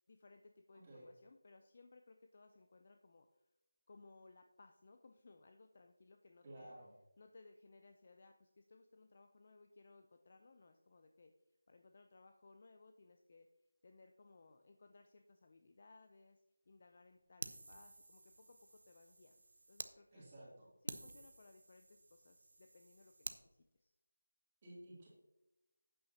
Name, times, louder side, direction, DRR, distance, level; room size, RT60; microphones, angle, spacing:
voice 1, 0.1-3.5 3.9-6.7 7.2-13.5 13.8-20.3 20.8-23.9, left 3 dB, 30° left, 6 dB, 0.5 m, -63 dB
voice 2, 0.7-1.0 6.4-6.9 20.1-20.7 24.6-25.1, right 1 dB, 20° right, -6 dB, 2.7 m, -54 dB
Fire, 17.4-19.9 20.4-20.5 20.9-23.4, right 2 dB, 50° right, 0.7 m, -51 dB
12.0 x 8.7 x 2.8 m, 0.98 s
figure-of-eight pair, 175°, 0 cm